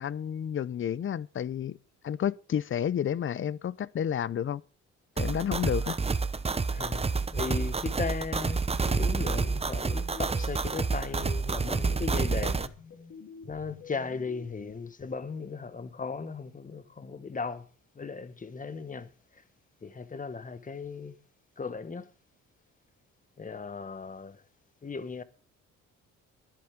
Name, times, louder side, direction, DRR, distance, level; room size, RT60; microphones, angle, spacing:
voice 1, 0.0-1.8 2.0-4.6 5.2-6.0, left 9 dB, 40° left, 0.6 m, -30 dB
sound 1, 5.2-12.7, right 4 dB, 20° right, 0.8 m, -29 dB
voice 2, 6.7-12.7 13.4-17.7 17.9-19.4 19.8-21.2 21.6-22.1 23.4-24.4 24.8-25.2, left 4 dB, 25° left, 1.3 m, -37 dB
sound 2, 9.0-10.7 11.1-15.1, left 5 dB, 60° left, 3.3 m, -49 dB
12.5 x 11.0 x 5.1 m
cardioid pair, 90°, 30 cm